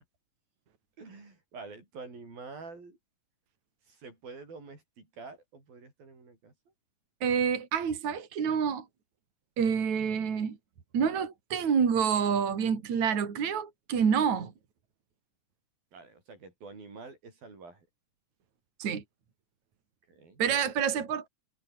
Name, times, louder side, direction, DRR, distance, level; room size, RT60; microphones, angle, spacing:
voice 1, 1.0-3.0 3.9-6.5 15.9-17.9 20.1-20.4, right 4 dB, 90° right, 9.7 m, -47 dB
voice 2, 7.2-8.9 9.6-10.6 10.9-14.5 18.8-19.0 20.4-21.3, right 7 dB, 55° right, 4.4 m, -27 dB
omnidirectional pair, 4.0 m